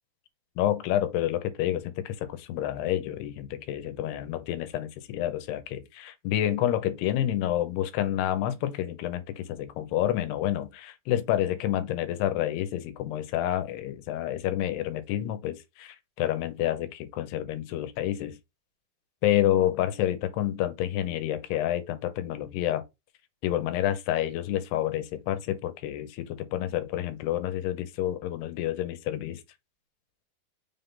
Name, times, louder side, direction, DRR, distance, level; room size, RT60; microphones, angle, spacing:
voice 1, 0.6-18.4 19.2-22.8 23.4-29.4, left 12 dB, 85° left, 3.0 m, -29 dB
6.3 x 3.7 x 4.0 m
omnidirectional pair, 4.6 m